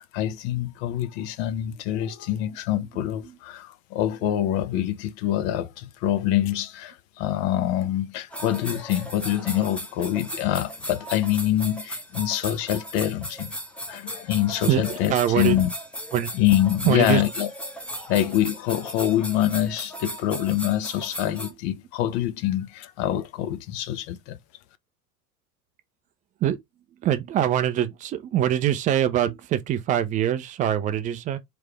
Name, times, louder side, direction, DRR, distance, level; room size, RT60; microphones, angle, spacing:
voice 1, 0.0-13.5 13.9-15.7 16.3-17.5 18.1-24.4, left 12 dB, 45° left, 0.7 m, -25 dB
sound 1, 8.3-21.5, equal, 5° left, 0.8 m, -36 dB
voice 2, 14.7-15.6 16.1-16.3 16.8-17.2 18.0-18.1 26.4-26.6 27.0-31.4, right 11 dB, 20° right, 0.4 m, -23 dB
3.4 x 3.3 x 3.3 m
figure-of-eight pair, 85°, 46 cm